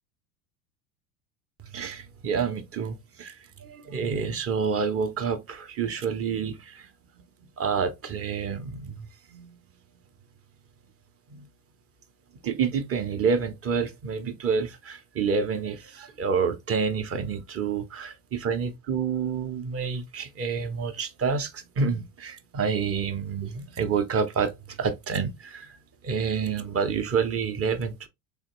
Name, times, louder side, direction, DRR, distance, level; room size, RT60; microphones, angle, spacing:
voice 1, 1.7-6.9 7.6-9.6 11.3-11.5 12.4-25.8 26.0-28.1, right 6 dB, 30° right, 0.7 m, -28 dB
3.5 x 3.0 x 2.9 m
hypercardioid pair, 100°, 48 cm